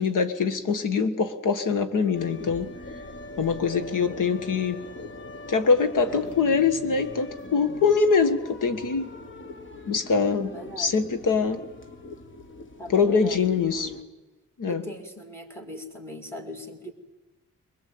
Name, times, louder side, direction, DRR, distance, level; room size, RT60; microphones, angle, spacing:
voice 1, 0.0-2.7 3.4-4.9 5.5-9.1 9.9-11.6 12.9-13.9 14.6-14.8, left 5 dB, 75° left, 9 dB, 1.7 m, -23 dB
sound 1, 2.1-14.0, left 2 dB, 40° left, 1.6 m, -41 dB
voice 2, 10.5-11.0 12.8-14.1 14.7-16.9, equal, 10° left, 4 dB, 2.7 m, -40 dB
23.5 x 21.5 x 8.7 m, 1.1 s
wide cardioid pair, 165°, 31 cm